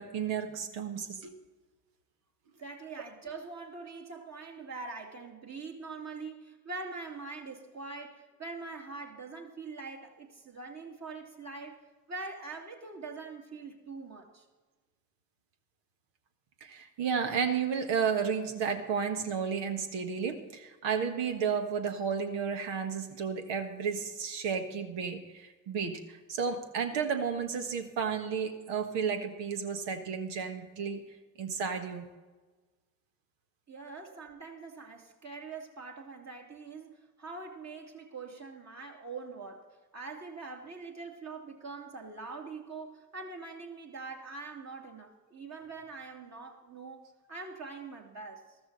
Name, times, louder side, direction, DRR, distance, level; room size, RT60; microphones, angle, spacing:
voice 1, 0.0-1.3 16.6-31.0 31.4-32.1, right 6 dB, 65° right, 6 dB, 1.5 m, -32 dB
voice 2, 2.6-14.5 33.7-48.6, right 4 dB, 35° right, 2 dB, 2.5 m, -43 dB
14.0 x 13.5 x 4.1 m, 1.3 s
hypercardioid pair, 45°, 46 cm